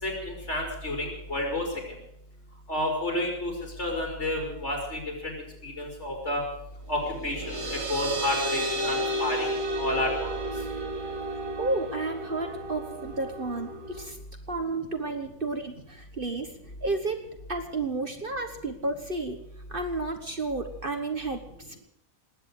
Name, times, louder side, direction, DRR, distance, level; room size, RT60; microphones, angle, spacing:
voice 1, 0.0-1.7 2.7-3.5 3.8-5.4 5.6-6.4 6.9-9.5 9.8-10.3, left 1 dB, 55° left, 0 dB, 5.1 m, -30 dB
sound 1, 6.9-14.1, right 1 dB, 70° right, 2.7 m, -32 dB
voice 2, 11.6-14.2 14.5-16.5 16.8-17.2 17.5-19.4 19.7-21.8, right 3 dB, 40° right, 6 dB, 1.4 m, -32 dB
19.5 x 8.9 x 8.2 m, 0.74 s
omnidirectional pair, 1.4 m